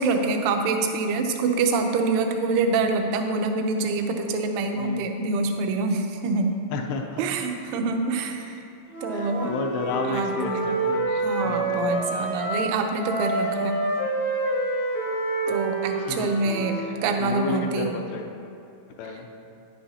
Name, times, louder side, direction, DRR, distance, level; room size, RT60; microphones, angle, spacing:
voice 1, 0.0-6.5 7.2-8.6 9.0-9.5 10.1-10.7 11.1-13.8 15.5-18.0, right 3 dB, 85° right, 5 dB, 3.1 m, -26 dB
voice 2, 4.8-5.1 6.7-7.2 9.1-11.0 11.4-11.9 16.1-16.3 16.8-16.9 17.2-18.3 19.0-19.3, left 4 dB, 85° left, 2 dB, 2.4 m, -31 dB
Wind instrument woodwind instrument, 8.9-12.7 13.0-17.0, right 2 dB, 60° left, 0.9 m, -28 dB
10.5 x 9.9 x 2.8 m, 2.6 s
omnidirectional pair, 5.5 m